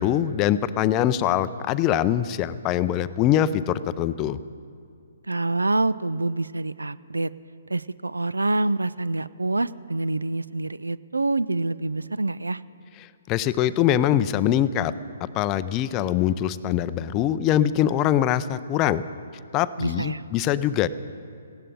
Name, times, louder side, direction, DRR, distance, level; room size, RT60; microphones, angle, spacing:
voice 1, 0.0-4.4 13.3-14.9 15.3-19.0 19.5-20.9, left 11 dB, 25° left, 14 dB, 0.5 m, -23 dB
voice 2, 5.3-7.3 7.7-12.6 19.8-20.2, right 2 dB, 80° right, 18 dB, 0.4 m, -26 dB
18.5 x 16.0 x 3.8 m, 2.4 s
figure-of-eight pair, 130°, 0 cm